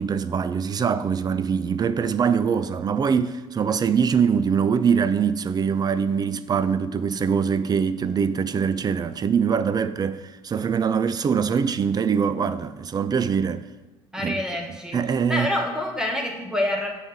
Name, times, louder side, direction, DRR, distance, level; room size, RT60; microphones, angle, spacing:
voice 1, 0.0-13.6 14.2-14.4 14.9-15.5, right 6 dB, 30° right, 0.4 m, -23 dB
voice 2, 14.1-15.0 15.3-16.9, left 1 dB, 5° right, 1.1 m, -27 dB
7.1 x 3.3 x 5.9 m
hypercardioid pair, 65°, 13 cm